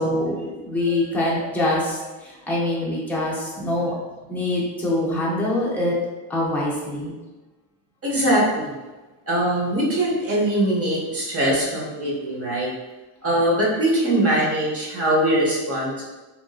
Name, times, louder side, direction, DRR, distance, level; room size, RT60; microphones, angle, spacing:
voice 1, 0.0-4.0 4.3-5.9 6.3-7.1, left 1 dB, 5° left, -6 dB, 0.5 m, -24 dB
voice 2, 8.0-8.7 9.3-12.7 13.2-16.0, right 1 dB, 30° right, -4 dB, 0.8 m, -22 dB
2.9 x 2.6 x 2.3 m, 1.2 s
cardioid pair, 145°, 48 cm